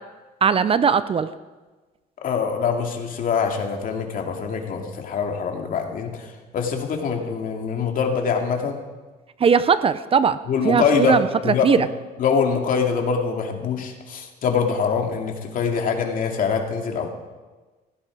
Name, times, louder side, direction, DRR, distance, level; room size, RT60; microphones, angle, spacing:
voice 1, 0.4-1.3 9.4-10.4 10.6-11.3 11.6-11.9, right 6 dB, 35° right, 14 dB, 0.6 m, -19 dB
voice 2, 2.2-8.8 10.5-11.8 12.2-17.1, left 6 dB, 55° left, 3 dB, 2.5 m, -24 dB
17.0 x 15.5 x 4.8 m, 1.3 s
cardioid pair, 110°, 17 cm